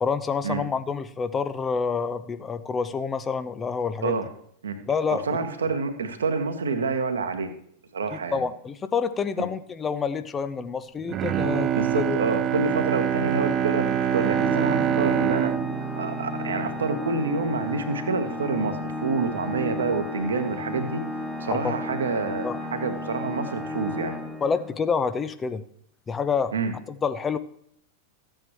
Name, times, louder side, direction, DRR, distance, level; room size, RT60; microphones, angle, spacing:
voice 1, 0.0-4.2 4.9-5.2 8.3-11.7 11.9-12.2 21.5-21.7 22.4-22.6 24.4-25.6 26.1-26.5 26.9-27.4, left 5 dB, 20° left, 12 dB, 0.6 m, -27 dB
voice 2, 5.1-7.5 7.9-8.4 9.4-9.5 11.7-15.5 16.0-21.0 21.4-24.2 26.5-26.7, right 4 dB, 70° right, 7 dB, 1.2 m, -28 dB
Bowed string instrument, 11.0-17.3 17.7-17.8, right 9 dB, 30° right, 0.5 m, -26 dB
Organ, 14.1-24.9, left 2 dB, ahead, 1.3 m, -33 dB
14.5 x 8.9 x 3.1 m, 0.68 s
figure-of-eight pair, 90°, 0 cm